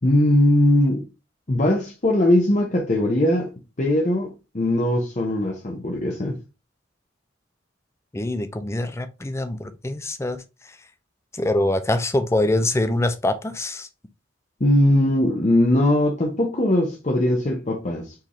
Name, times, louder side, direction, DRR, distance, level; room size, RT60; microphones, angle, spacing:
voice 1, 0.0-1.1 1.5-3.5 3.8-6.4 14.6-18.1, left 1 dB, 40° left, 0.8 m, -20 dB
voice 2, 8.1-10.8 11.3-13.9, left 1 dB, 15° left, 0.5 m, -24 dB
4.6 x 3.6 x 3.0 m
head